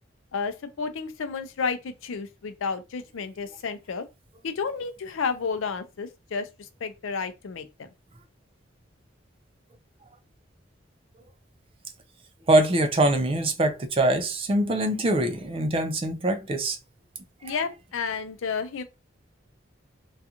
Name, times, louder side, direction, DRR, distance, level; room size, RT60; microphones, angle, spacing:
voice 1, 0.3-4.0 4.4-7.9 17.4-18.8, left 5 dB, 90° left, 0.4 m, -31 dB
voice 2, 12.5-16.8 17.4-17.5, right 1 dB, 30° right, 0.4 m, -23 dB
2.4 x 2.3 x 2.8 m
head